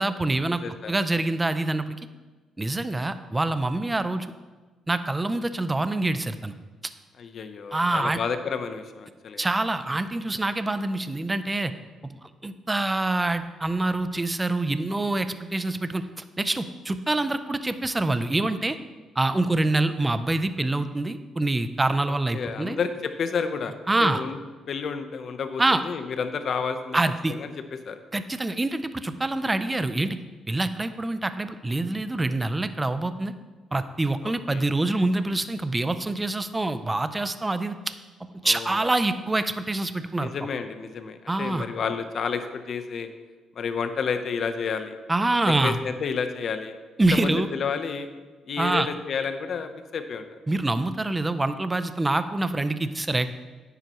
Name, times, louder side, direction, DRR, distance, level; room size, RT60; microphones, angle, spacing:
voice 1, 0.0-0.6 0.9-2.0 2.6-4.3 4.9-6.5 7.7-8.2 9.4-11.7 12.0-18.8 19.2-22.8 23.9-24.2 25.6-25.8 26.9-27.3 28.1-30.2 30.5-33.3 33.7-37.9 38.4-40.3 41.3-41.7 45.1-45.8 47.0-47.5 48.6-48.9 50.5-53.3, right 2 dB, 15° right, 11 dB, 0.6 m, -25 dB
voice 2, 7.2-9.4 22.1-23.7 24.0-24.4 24.7-27.0 27.3-27.5 27.9-28.0 34.2-34.6 38.4-38.9 40.2-43.1 43.5-45.0 45.5-46.8 47.1-48.1 48.5-50.4, left 6 dB, 55° left, 8 dB, 0.9 m, -30 dB
9.9 x 9.5 x 3.1 m, 1.3 s
cardioid pair, 90°, 0 cm